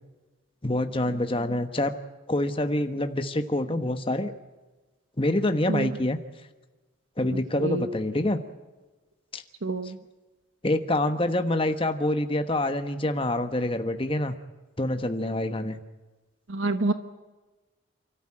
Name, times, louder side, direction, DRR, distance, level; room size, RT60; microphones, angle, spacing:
voice 1, 0.6-1.9 2.3-4.3 5.2-6.2 7.2-8.4 9.3-9.4 10.6-14.3 14.8-15.8, left 1 dB, 25° left, 7 dB, 1.2 m, -26 dB
voice 2, 7.3-7.8 9.6-10.0 16.5-16.9, right 2 dB, 75° right, 9 dB, 1.2 m, -28 dB
29.0 x 14.0 x 8.7 m, 1.2 s
head